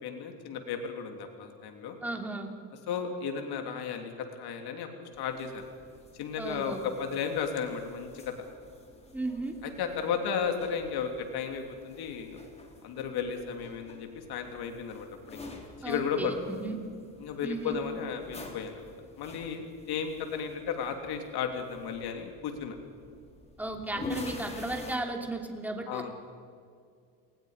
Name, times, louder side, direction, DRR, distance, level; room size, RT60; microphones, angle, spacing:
voice 1, 0.0-2.0 2.9-5.6 6.2-8.3 9.6-12.4 12.8-15.5 15.8-16.6 17.2-22.7 25.9-26.1, left 6 dB, 60° left, 4 dB, 3.2 m, -34 dB
voice 2, 2.0-2.5 6.4-6.8 9.1-9.6 15.8-16.8 17.4-17.8 23.6-26.1, right 2 dB, 5° right, 3 dB, 3.0 m, -35 dB
sound 1, 5.1-25.0, left 2 dB, 15° left, 3.5 m, -47 dB
29.0 x 20.5 x 5.2 m, 2.3 s
cardioid pair, 115°, 43 cm